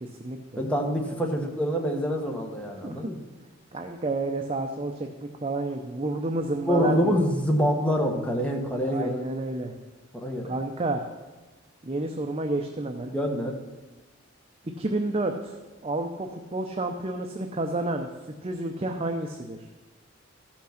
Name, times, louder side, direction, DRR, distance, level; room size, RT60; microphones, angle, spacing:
voice 1, 0.0-0.6 2.8-3.0 3.7-7.2 8.9-9.7 10.5-11.1 11.8-13.1 14.8-15.6 15.8-18.1 18.4-19.6, right 2 dB, 30° right, 4 dB, 0.6 m, -30 dB
voice 2, 0.6-3.2 6.7-9.2 10.1-10.5 13.1-13.6, equal, 5° left, 1 dB, 1.3 m, -26 dB
14.0 x 6.0 x 5.8 m, 1.2 s
head